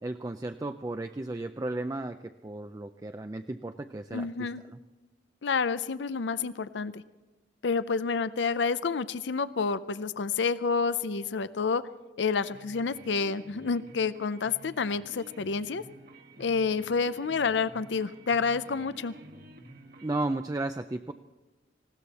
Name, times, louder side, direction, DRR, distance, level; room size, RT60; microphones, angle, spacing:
voice 1, 0.0-4.8 20.0-21.1, right 2 dB, 20° right, 7 dB, 0.4 m, -34 dB
voice 2, 4.1-4.6 5.4-7.0 7.6-11.8 12.2-15.8 16.4-19.1, left 5 dB, 75° left, 14 dB, 0.5 m, -29 dB
sound 1, 12.4-20.3, right 1 dB, 55° right, 1.6 m, -50 dB
19.5 x 16.5 x 4.2 m, 1.2 s
head